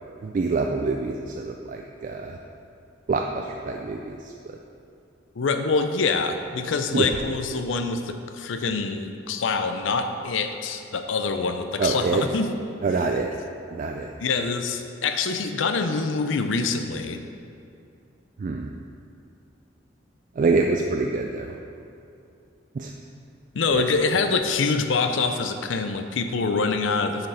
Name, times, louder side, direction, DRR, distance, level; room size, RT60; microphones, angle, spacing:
voice 1, 0.2-2.4 3.1-4.3 6.9-7.1 11.8-12.2 12.8-13.3 13.7-14.1 18.4-18.7 20.4-21.6 22.7-22.9 23.7-23.8, right 3 dB, 45° right, 2 dB, 0.3 m, -26 dB
voice 2, 5.4-12.6 13.0-13.1 14.2-17.2 23.5-27.3, left 4 dB, 85° left, 8 dB, 0.5 m, -25 dB
7.3 x 4.8 x 5.0 m, 2.6 s
head